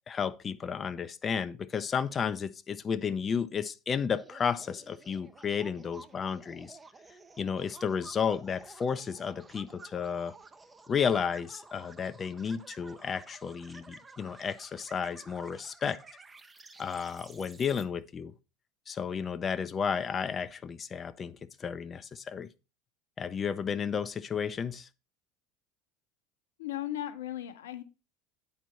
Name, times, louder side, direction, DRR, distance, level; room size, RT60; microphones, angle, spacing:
voice 1, 0.1-6.8 7.4-10.3 10.9-16.0 16.8-18.3 18.9-22.5 23.2-24.9, left 6 dB, 30° left, 0.5 m, -32 dB
sound 1, 4.1-17.8, right 3 dB, 20° right, 0.7 m, -53 dB
voice 2, 26.6-27.8, left 13 dB, 80° left, 0.8 m, -36 dB
9.2 x 4.5 x 4.2 m
hypercardioid pair, 80°, 0 cm